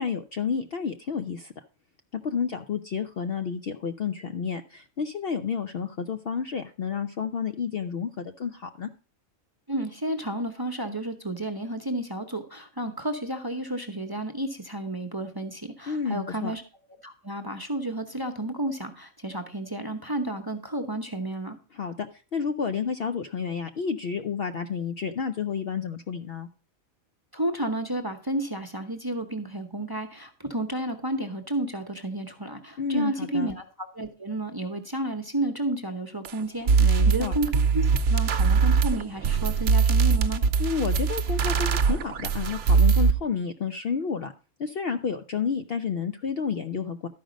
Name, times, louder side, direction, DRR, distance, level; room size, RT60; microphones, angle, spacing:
voice 1, 0.0-1.5 2.1-8.9 15.9-16.5 21.7-26.5 32.8-33.5 36.8-37.3 40.6-44.3 44.6-47.1, left 6 dB, 60° left, 8 dB, 0.7 m, -30 dB
voice 2, 9.7-16.6 17.0-21.6 27.3-40.4, right 1 dB, 20° right, 6 dB, 0.7 m, -31 dB
sound 1, 36.2-36.3 36.7-43.1, right 5 dB, 65° right, 1.0 m, -21 dB
12.5 x 5.1 x 5.0 m, 0.37 s
omnidirectional pair, 1.4 m